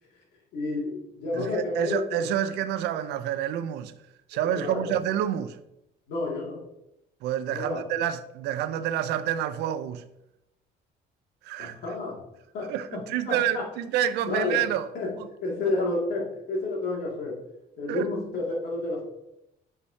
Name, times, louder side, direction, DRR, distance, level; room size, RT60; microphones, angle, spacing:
voice 1, 0.5-2.3 4.3-4.9 6.1-6.7 7.5-7.8 11.6-12.2 12.5-12.7 13.3-13.6 14.3-14.6 14.9-15.1 15.4-17.3 17.8-19.0, left 2 dB, 75° left, 2.3 m, -30 dB
voice 2, 1.3-3.9 4.3-5.6 7.2-10.0 11.4-11.7 12.7-14.9 15.2-15.3 17.9-18.1, right 10 dB, 85° right, 0.5 m, -28 dB
8.4 x 4.8 x 2.8 m
cardioid pair, 110°, 17 cm